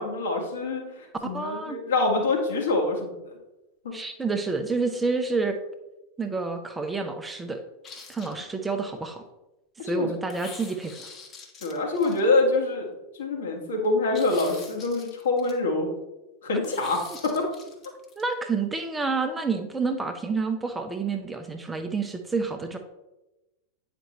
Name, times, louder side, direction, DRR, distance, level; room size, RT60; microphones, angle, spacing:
voice 1, 0.0-3.3 3.8-3.9 9.8-10.2 11.6-12.9 13.2-15.9 16.4-17.5, left 2 dB, 65° left, 0 dB, 1.9 m, -25 dB
voice 2, 1.2-1.8 3.9-5.6 6.2-7.6 8.1-9.2 9.8-11.1 18.2-22.8, right 4 dB, 10° right, 5 dB, 0.7 m, -29 dB
sound 1, 7.8-8.8 10.3-12.6 14.1-15.5 16.6-18.2, left 4 dB, 30° left, 1.3 m, -45 dB
8.9 x 5.1 x 3.2 m, 1.0 s
figure-of-eight pair, 90°, 0 cm